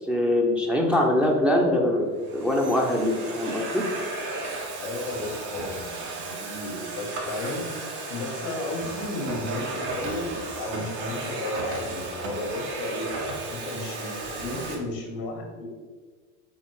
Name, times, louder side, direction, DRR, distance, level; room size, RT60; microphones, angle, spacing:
voice 1, 0.1-3.8, left 1 dB, ahead, -1 dB, 0.9 m, -23 dB
Domestic sounds home sounds, 0.9-1.3 2.0-14.7, right 2 dB, 60° right, 1.8 m, -34 dB
voice 2, 4.8-7.6 8.1-13.1 13.5-15.6, left 2 dB, 75° left, 2 dB, 1.9 m, -34 dB
5.7 x 4.0 x 4.9 m, 1.5 s
hypercardioid pair, 90°, 48 cm